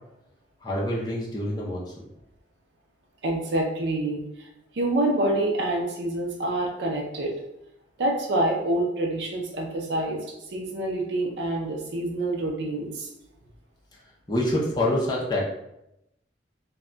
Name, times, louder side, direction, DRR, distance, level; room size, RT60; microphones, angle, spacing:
voice 1, 0.6-1.8 14.3-15.5, left 1 dB, 25° left, -4 dB, 0.5 m, -26 dB
voice 2, 3.2-4.5 4.7-7.3 8.0-10.2 10.5-13.1, right 1 dB, 70° right, -1 dB, 0.5 m, -27 dB
2.2 x 2.2 x 3.7 m, 0.84 s
head